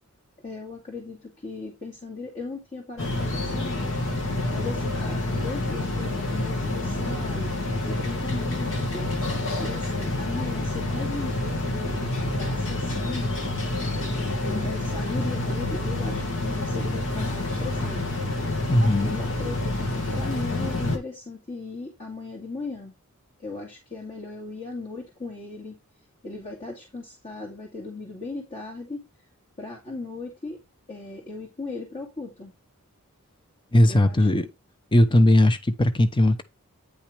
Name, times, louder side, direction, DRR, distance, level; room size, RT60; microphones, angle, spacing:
voice 1, 0.4-9.3 9.6-13.3 13.8-18.1 19.0-23.0 23.4-25.8 26.2-29.1 29.6-30.6 30.9-32.5 33.9-34.3 35.1-35.3, left 3 dB, 40° left, 2.4 m, -37 dB
sound 1, 3.0-21.0, left 2 dB, 65° left, 2.3 m, -28 dB
voice 2, 18.7-19.2 33.7-34.5 34.9-36.4, left 1 dB, 20° left, 0.8 m, -18 dB
9.5 x 5.5 x 3.4 m
head